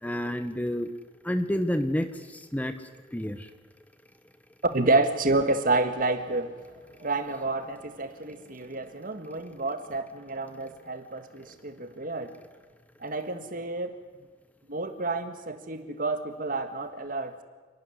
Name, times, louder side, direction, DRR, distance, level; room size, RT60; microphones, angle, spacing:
voice 1, 0.0-0.9 1.2-2.8 3.1-3.5, equal, 10° left, 1.0 m, -29 dB
voice 2, 4.7-6.6 7.0-12.4 13.0-14.0 14.7-17.4, right 2 dB, 45° right, 1.7 m, -29 dB
27.5 x 12.5 x 9.8 m
head